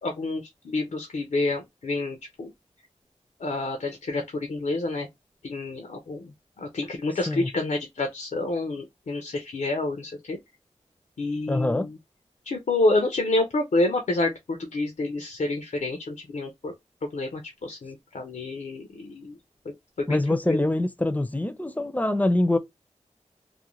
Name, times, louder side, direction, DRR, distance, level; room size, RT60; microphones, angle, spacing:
voice 1, 0.0-2.5 3.4-5.1 5.4-6.3 6.6-10.4 11.2-12.0 12.5-16.7 17.1-19.4 19.7-20.2 20.5-20.6, left 2 dB, 90° left, 0.5 m, -28 dB
voice 2, 11.5-11.9 20.1-22.6, left 1 dB, 15° left, 0.4 m, -24 dB
2.5 x 2.1 x 2.9 m
wide cardioid pair, 45°, 12 cm